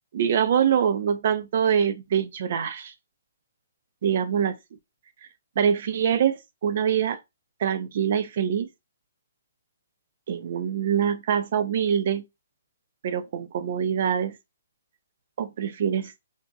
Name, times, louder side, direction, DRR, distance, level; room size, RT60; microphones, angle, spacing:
voice 1, 0.1-2.9 4.0-4.6 5.6-7.2 7.6-8.7 10.3-12.2 13.0-14.4 15.4-16.1, right 8 dB, 50° right, 0.3 m, -24 dB
2.6 x 2.2 x 2.5 m
figure-of-eight pair, 130°, 0 cm